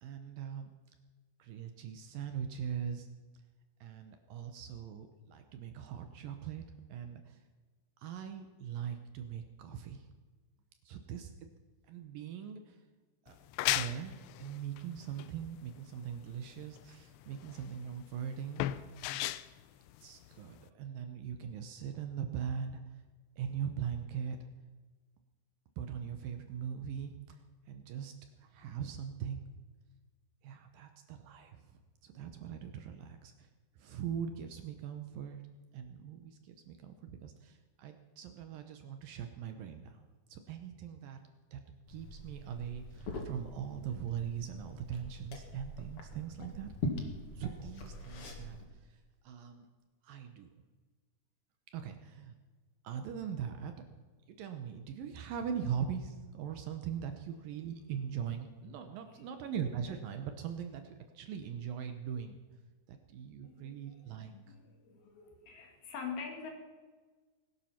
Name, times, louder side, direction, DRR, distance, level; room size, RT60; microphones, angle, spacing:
voice 1, 0.0-0.7 1.4-3.1 3.8-6.6 6.9-7.4 8.0-10.1 10.8-11.3 11.9-12.8 13.2-13.4 13.7-18.6 20.0-23.0 23.4-24.4 25.8-27.4 27.7-28.1 28.4-29.5 30.4-33.5 33.8-35.4 35.7-40.0 40.3-41.2 41.5-41.6 41.9-46.7 47.3-49.7 50.0-50.5 51.7-52.4 52.8-53.7 54.3-62.4 62.9-64.6, right 8 dB, 70° right, 7 dB, 2.4 m, -41 dB
sound 1, 13.3-20.7, left 15 dB, 90° left, 2.7 m, -37 dB
Liquid, 41.9-48.6, left 2 dB, 45° left, 2.1 m, -43 dB
voice 2, 63.4-66.5, left 6 dB, 70° left, 2 dB, 4.1 m, -45 dB
20.0 x 11.5 x 5.8 m, 1.3 s
omnidirectional pair, 4.7 m